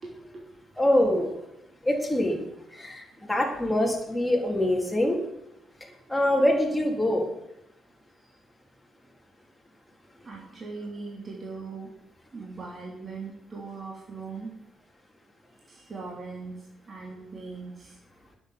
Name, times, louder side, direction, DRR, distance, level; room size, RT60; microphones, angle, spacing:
voice 1, 0.0-0.5 8.2-8.3 10.2-11.9 12.3-14.6 15.6-18.0, right 4 dB, 35° right, -2 dB, 3.1 m, -40 dB
voice 2, 0.8-1.3 1.8-2.4 2.7-5.2 6.1-7.2, left 1 dB, 10° left, 0 dB, 3.9 m, -24 dB
10.0 x 8.1 x 9.5 m, 0.83 s
cardioid pair, 90°, 0 cm